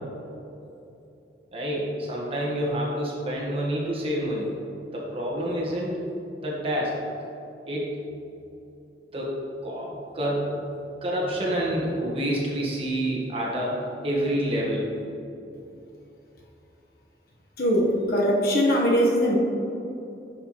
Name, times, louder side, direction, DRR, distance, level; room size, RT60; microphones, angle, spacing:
voice 1, 1.5-4.5 4.9-6.0 6.4-7.0 7.7-7.9 9.1-14.9, equal, 35° right, -4 dB, 1.5 m, -28 dB
voice 2, 17.6-19.4, equal, 55° left, -2 dB, 1.3 m, -21 dB
10.5 x 5.6 x 3.1 m, 2.8 s
head